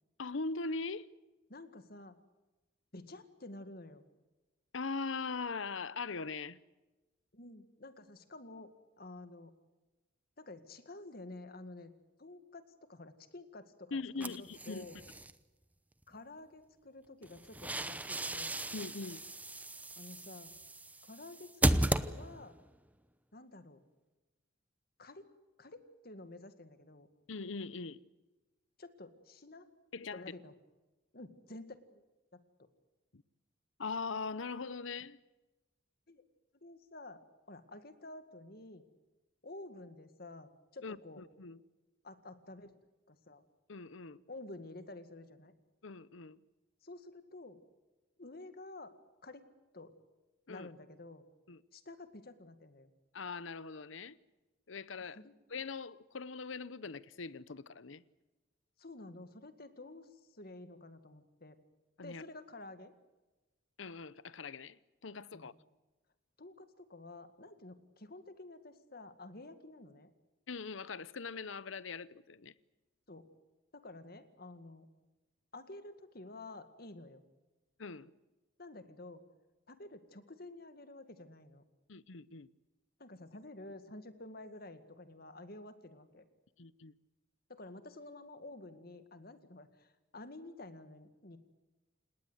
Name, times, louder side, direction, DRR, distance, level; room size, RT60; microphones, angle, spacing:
voice 1, 0.2-1.1 4.7-6.6 13.9-14.9 18.7-19.2 27.3-28.0 29.9-30.2 33.1-33.2 33.8-35.2 40.8-41.6 43.7-44.2 45.8-46.4 50.5-50.7 51.5-51.6 53.1-54.2 54.7-55.2 55.5-58.0 62.0-62.2 63.8-65.5 70.5-72.5 77.8-78.1 81.9-82.5 86.6-86.9, left 4 dB, 80° left, 0.9 m, -41 dB
voice 2, 1.5-2.2 2.9-4.0 7.3-9.5 10.4-11.9 12.2-15.0 16.1-18.5 20.0-20.5 21.0-22.5 23.3-23.8 25.0-25.3 25.6-27.1 28.8-29.7 30.1-30.5 31.1-32.0 32.6-32.7 36.1-36.2 36.5-37.2 37.5-38.8 39.4-41.2 42.0-42.7 43.1-43.4 44.3-45.5 46.8-47.6 48.2-48.9 49.2-49.4 49.7-49.9 50.5-51.2 51.7-52.9 55.2-55.3 58.8-61.6 62.0-62.9 65.3-65.5 66.4-70.1 73.1-73.3 73.7-74.9 75.5-77.2 78.6-79.2 79.7-81.6 83.0-86.2 87.5-91.4, left 2 dB, 50° left, 2.0 m, -50 dB
sound 1, 14.2-15.3 17.2-22.6, right 1 dB, 10° right, 0.8 m, -35 dB
29.5 x 18.5 x 8.1 m
head